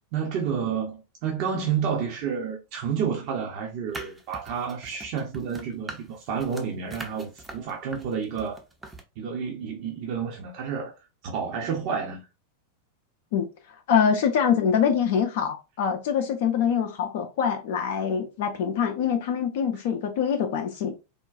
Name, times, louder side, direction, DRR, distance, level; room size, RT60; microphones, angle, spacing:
voice 1, 0.1-8.6 9.2-10.9 11.2-12.2, right 7 dB, 45° right, 0.7 m, -30 dB
sound 1, 3.9-9.0, right 2 dB, 10° right, 0.6 m, -42 dB
voice 2, 13.9-20.9, left 7 dB, 50° left, 0.5 m, -24 dB
3.6 x 2.2 x 2.4 m
figure-of-eight pair, 90°, 0 cm